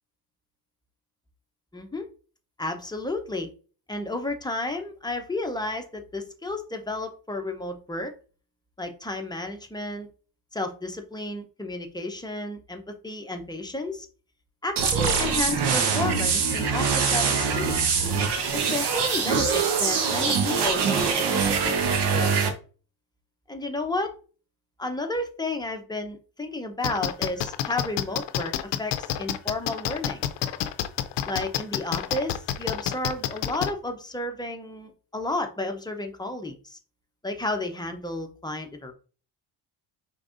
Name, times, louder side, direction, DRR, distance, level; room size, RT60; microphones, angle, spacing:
voice 1, 1.7-2.1 2.6-3.5 3.9-8.1 8.8-10.1 10.5-14.1 14.6-17.8 18.5-21.8 22.1-22.5 23.5-24.2 24.8-28.5 28.8-30.2 31.2-36.8 37.2-38.9, left 2 dB, 10° left, 4 dB, 0.7 m, -32 dB
sound 1, 14.8-22.5, right 5 dB, 75° right, 1.0 m, -23 dB
sound 2, 26.8-33.7, left 12 dB, 90° left, 0.6 m, -28 dB
5.2 x 3.6 x 2.6 m, 0.37 s
cardioid pair, 110°, 41 cm